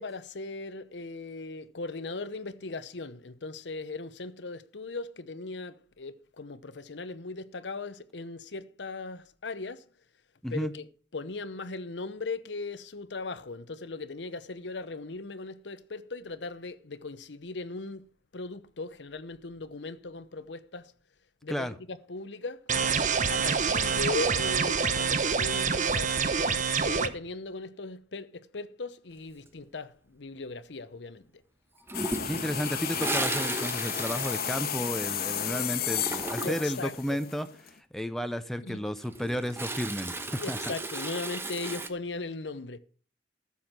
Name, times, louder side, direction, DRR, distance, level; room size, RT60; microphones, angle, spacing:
voice 1, 0.0-9.8 10.5-10.9 11.1-20.9 21.4-22.7 23.3-31.3 32.3-32.5 36.4-37.2 38.7-38.9 40.4-42.8, left 3 dB, 90° left, 0.9 m, -38 dB
sound 1, 22.7-27.1, right 6 dB, 45° right, 0.9 m, -26 dB
sound 2, 31.9-37.7, left 8 dB, 55° left, 1.3 m, -33 dB
Toilet flush, 31.9-35.4 35.6-36.8 38.8-41.9, right 2 dB, 15° right, 1.0 m, -35 dB
voice 2, 32.2-40.6, equal, ahead, 0.6 m, -33 dB
13.5 x 7.1 x 5.9 m
head